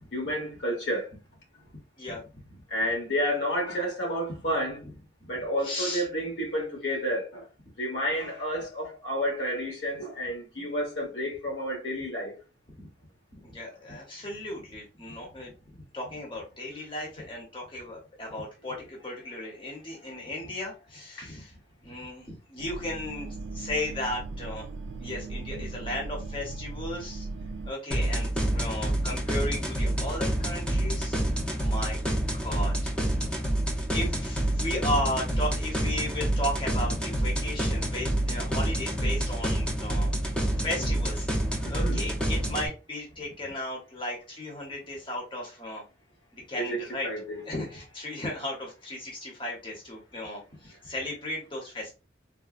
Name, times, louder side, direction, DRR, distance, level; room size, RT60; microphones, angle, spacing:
voice 1, 0.1-1.1 2.7-4.8 5.3-7.4 7.8-12.3 21.2-21.3 41.6-42.0 46.6-47.4, equal, 75° left, 1.2 m, -30 dB
voice 2, 5.6-6.0 13.4-15.5 15.9-24.7 25.0-27.3 27.7-32.0 32.3-33.0 33.9-40.1 40.6-41.3 41.7-45.8 46.5-47.1 47.4-51.9, left 1 dB, 25° left, 0.8 m, -35 dB
sound 1, 22.6-27.7, right 3 dB, 75° right, 0.3 m, -38 dB
sound 2, 27.9-42.7, right 1 dB, 5° left, 0.5 m, -28 dB
3.6 x 2.1 x 2.4 m
head